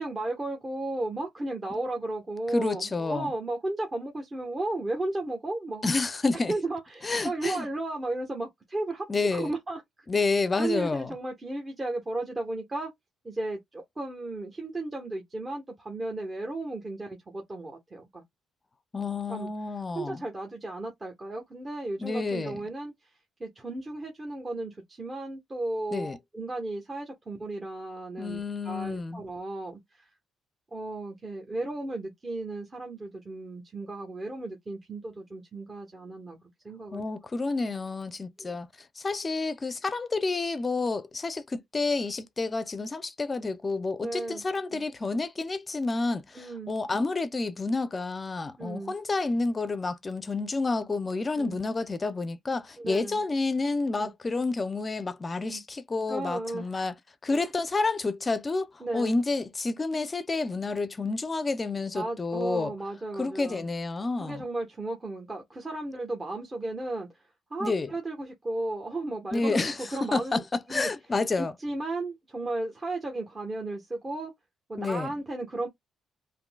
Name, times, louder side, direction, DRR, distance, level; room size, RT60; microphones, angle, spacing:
voice 1, 0.0-5.8 6.5-9.8 10.2-12.9 13.2-18.2 19.3-19.5 19.9-30.1 30.7-37.1 38.4-38.5 44.0-44.4 44.7-44.8 46.3-46.7 48.6-48.9 51.4-51.6 52.8-53.2 54.0-54.1 55.5-55.6 56.1-56.7 57.3-57.5 58.8-59.2 61.9-63.6 64.2-70.4 70.7-70.9 71.4-74.3 74.7-75.7, right 2 dB, 25° right, 1.1 m, -34 dB
voice 2, 2.5-3.3 5.8-6.5 7.0-7.7 9.1-9.5 10.1-11.1 18.9-20.2 22.0-22.6 25.9-26.2 28.2-29.2 36.9-38.7 39.0-56.9 57.2-62.7 63.2-64.4 67.6-67.9 69.3-71.5 74.8-75.1, left 3 dB, 30° left, 0.6 m, -29 dB
3.7 x 2.7 x 2.2 m
cardioid pair, 90°, 0 cm